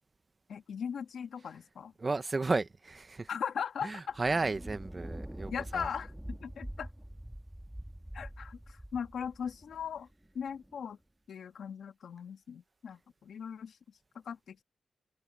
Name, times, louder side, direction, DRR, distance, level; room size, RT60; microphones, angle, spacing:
voice 1, 0.5-1.9 3.3-4.2 5.5-6.9 8.1-10.1 10.4-11.0 11.3-13.8 14.3-14.6, left 7 dB, 70° left, 1.8 m, -39 dB
voice 2, 2.0-3.3 3.8-5.9, right 3 dB, 30° right, 1.0 m, -33 dB
Thunder, 4.1-10.7, right 1 dB, 5° right, 2.8 m, -45 dB
cardioid pair, 85°, 0 cm